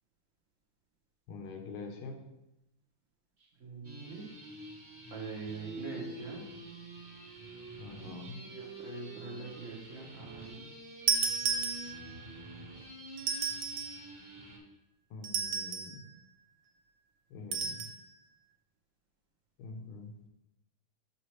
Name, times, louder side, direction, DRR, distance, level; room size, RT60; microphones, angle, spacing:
voice 1, 1.3-2.2 7.8-8.4 15.1-16.0 17.3-17.9 19.6-20.1, left 3 dB, 80° left, 3 dB, 1.7 m, -45 dB
voice 2, 3.4-4.3 5.1-6.4 8.0-10.7, right 3 dB, 55° right, 0 dB, 0.9 m, -44 dB
sound 1, 3.8-14.6, right 2 dB, 40° right, 1.7 m, -47 dB
sound 2, 11.1-12.2 13.2-14.0 15.2-16.0 17.5-18.0, right 6 dB, 85° right, 1.5 m, -32 dB
6.1 x 5.6 x 3.1 m, 0.91 s
omnidirectional pair, 2.3 m